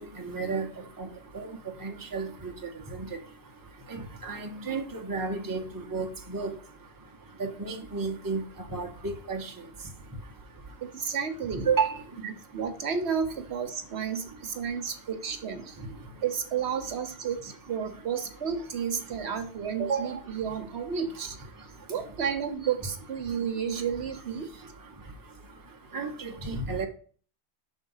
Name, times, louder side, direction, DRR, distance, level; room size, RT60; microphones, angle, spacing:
voice 1, 0.2-0.7 1.0-1.1 1.3-1.5 1.8-2.3 2.9-3.0 4.2-5.6 5.9-6.5 7.4-8.4 8.7-9.5 11.7-11.9 25.9-26.9, right 4 dB, 20° right, 0.9 m, -31 dB
voice 2, 10.8-11.7 12.2-15.7 16.2-21.4 21.9-24.5, right 7 dB, 70° right, 1.1 m, -31 dB
6.2 x 4.1 x 5.5 m
omnidirectional pair, 1.2 m